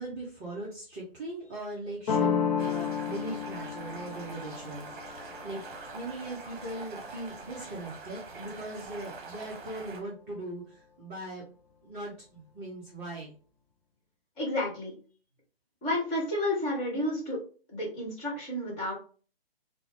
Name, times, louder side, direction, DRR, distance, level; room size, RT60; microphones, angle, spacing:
voice 1, 0.0-11.4 11.8-13.3, right 2 dB, 15° right, -6 dB, 0.5 m, -40 dB
sound 1, 2.1-7.6, left 7 dB, 45° left, 0.5 m, -33 dB
sound 2, 2.6-10.0, right 4 dB, 55° right, 0.9 m, -44 dB
voice 2, 14.4-14.9 15.8-17.4 17.7-18.9, left 1 dB, 20° left, -3 dB, 1.3 m, -31 dB
3.6 x 2.1 x 3.2 m, 0.40 s
hypercardioid pair, 145°, 31 cm